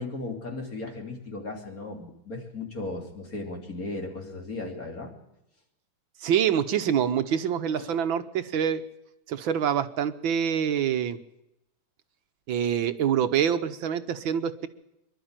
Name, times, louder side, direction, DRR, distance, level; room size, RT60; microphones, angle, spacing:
voice 1, 0.0-5.1 7.8-7.9, left 2 dB, 45° left, 2 dB, 3.5 m, -36 dB
voice 2, 6.2-8.8 9.3-11.2 12.5-14.7, right 8 dB, 75° right, 10 dB, 1.7 m, -26 dB
25.0 x 12.0 x 8.9 m, 0.87 s
omnidirectional pair, 2.2 m